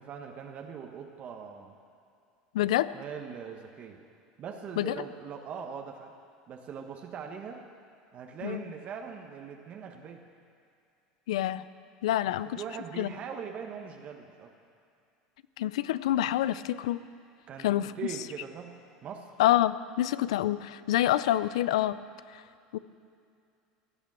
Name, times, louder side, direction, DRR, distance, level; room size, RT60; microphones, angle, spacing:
voice 1, 0.0-1.7 2.7-4.0 4.4-6.1 6.5-7.6 8.1-10.2 12.2-14.5 17.5-19.3, right 7 dB, 45° right, 3 dB, 1.3 m, -41 dB
voice 2, 2.5-2.9 4.8-4.9 8.4-8.6 11.3-11.6 12.0-12.6 13.0-13.1 15.6-17.0 17.6-17.9 19.4-22.0 22.3-22.4 22.7-22.8, left 13 dB, 85° left, 16 dB, 0.5 m, -27 dB
16.0 x 9.5 x 7.7 m, 2.5 s
supercardioid pair, 100°, 3 cm